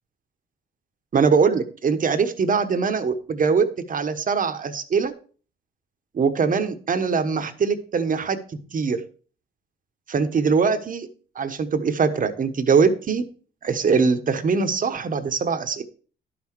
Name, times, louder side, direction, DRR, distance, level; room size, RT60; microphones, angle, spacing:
voice 1, 1.1-5.1 6.1-8.4 8.7-9.0 10.1-11.1 11.3-13.2 13.6-15.8, right 5 dB, 45° right, 9 dB, 1.2 m, -22 dB
11.5 x 6.0 x 4.6 m, 0.41 s
cardioid pair, 90°, 20 cm